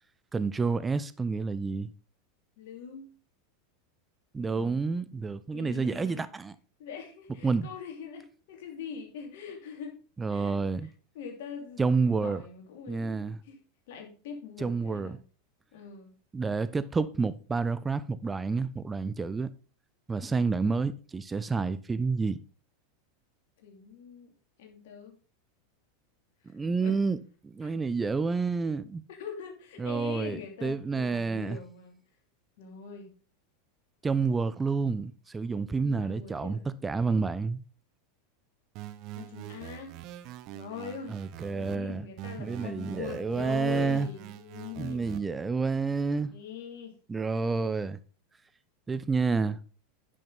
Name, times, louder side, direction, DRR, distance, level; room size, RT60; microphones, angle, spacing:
voice 1, 0.3-1.9 4.3-6.5 7.4-7.7 10.2-10.9 11.8-12.4 12.9-13.4 14.6-15.2 16.3-19.5 20.1-22.4 26.5-27.2 27.4-29.0 29.8-31.6 34.0-37.6 41.1-42.0 42.4-44.1 44.8-46.3 47.1-48.0 48.9-49.6, right 4 dB, 15° right, 0.7 m, -29 dB
voice 2, 2.6-3.1 5.5-6.3 6.8-10.0 10.3-10.5 10.8-13.6 13.9-15.2 15.7-16.1 20.2-20.6 23.6-24.3 24.6-25.1 26.8-27.0 27.6-27.7 29.1-32.0 32.6-33.1 35.7-36.7 39.2-40.0 40.5-41.2 41.5-45.4 46.3-46.9, left 7 dB, 65° left, 2.8 m, -43 dB
sound 1, 38.7-41.8 42.2-45.2, right 13 dB, 50° right, 0.8 m, -44 dB
10.5 x 6.4 x 3.9 m
hypercardioid pair, 90°, 0 cm